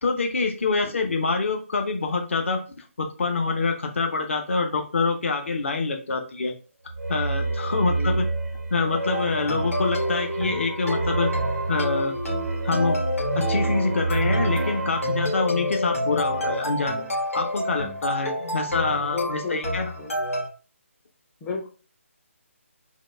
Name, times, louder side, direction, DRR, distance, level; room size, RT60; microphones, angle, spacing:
voice 1, 0.0-2.6 3.0-6.5 7.1-8.2 8.7-11.3 11.7-12.1 12.6-13.0 13.4-19.9, left 4 dB, 60° left, 4 dB, 0.8 m, -26 dB
sound 1, 6.9-16.6, right 2 dB, 85° right, 0.6 m, -29 dB
voice 2, 7.7-8.3 18.4-18.5 18.9-20.2 21.4-21.7, left 3 dB, 10° left, -1 dB, 0.5 m, -34 dB
sound 2, 9.1-20.5, left 1 dB, 75° left, 1.6 m, -29 dB
4.0 x 2.3 x 3.2 m, 0.36 s
figure-of-eight pair, 150°, 8 cm